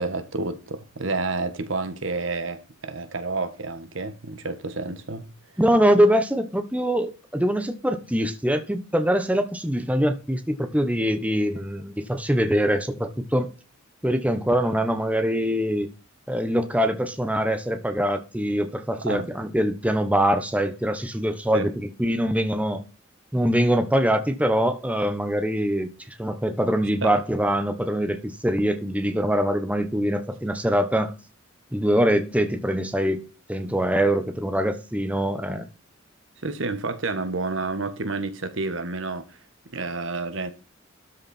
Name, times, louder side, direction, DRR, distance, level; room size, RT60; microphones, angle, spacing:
voice 1, 0.0-5.3 19.0-19.3 21.5-21.7 27.0-27.2 36.4-39.4 39.7-40.5, right 3 dB, 70° right, 1.5 m, -29 dB
voice 2, 5.6-13.5 14.0-15.9 16.3-22.8 23.3-25.9 26.2-31.1 31.7-33.2 33.5-35.7, equal, 5° right, 1.1 m, -23 dB
13.0 x 6.4 x 4.3 m
head